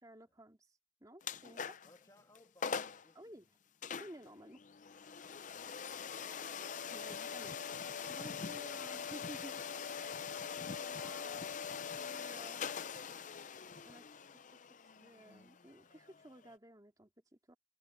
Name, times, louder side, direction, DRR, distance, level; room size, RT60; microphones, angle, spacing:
voice 1, 0.0-1.8 3.1-3.5 4.0-4.6 6.9-9.9 10.4-12.6 13.7-14.6 14.9-17.6, right 1 dB, 20° right, 2.9 m, -55 dB
sound 1, 1.2-2.0 2.4-2.5 2.6-3.1 3.8-16.5, left 6 dB, 45° left, 0.6 m, -43 dB
voice 2, 1.8-3.3 5.4-6.0 8.5-8.9, left 1 dB, 20° left, 2.1 m, -66 dB
head